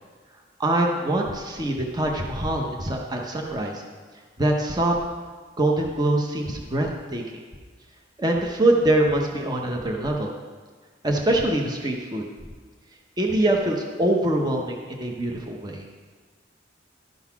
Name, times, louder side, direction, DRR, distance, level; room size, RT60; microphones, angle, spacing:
voice 1, 0.6-3.8 4.4-5.0 5.6-7.2 8.2-10.3 11.0-12.3 13.2-15.8, right 1 dB, 20° right, 1 dB, 0.7 m, -24 dB
12.0 x 4.0 x 5.8 m, 1.5 s
head